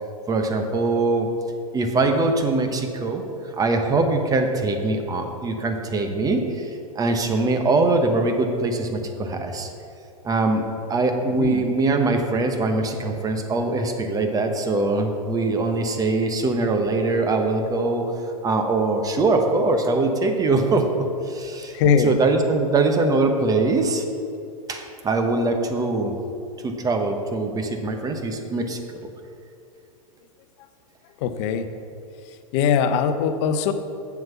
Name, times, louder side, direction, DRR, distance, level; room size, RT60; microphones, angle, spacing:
voice 1, 0.3-1.3 1.7-3.2 3.5-9.7 10.2-18.1 18.4-21.8 22.0-24.0 24.7-26.1 26.6-28.8, right 3 dB, 20° right, 5 dB, 1.0 m, -22 dB
voice 2, 11.2-11.6 21.7-22.1 31.2-31.7 32.5-33.7, left 7 dB, 50° left, 9 dB, 0.8 m, -21 dB
7.7 x 7.2 x 5.7 m, 2.7 s
hypercardioid pair, 110°, 19 cm